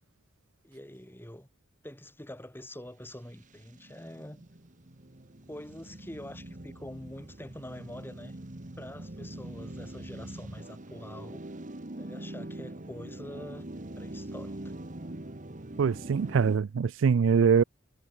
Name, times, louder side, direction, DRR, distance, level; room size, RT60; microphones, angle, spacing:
voice 1, 0.6-1.5 1.8-4.4 5.5-8.4 8.8-11.4 11.9-13.7 14.0-14.6, left 1 dB, 10° left, 4.3 m, -45 dB
sound 1, 3.3-16.6, right 1 dB, 40° right, 1.5 m, -43 dB
voice 2, 15.8-17.6, right 6 dB, 70° right, 0.4 m, -23 dB
head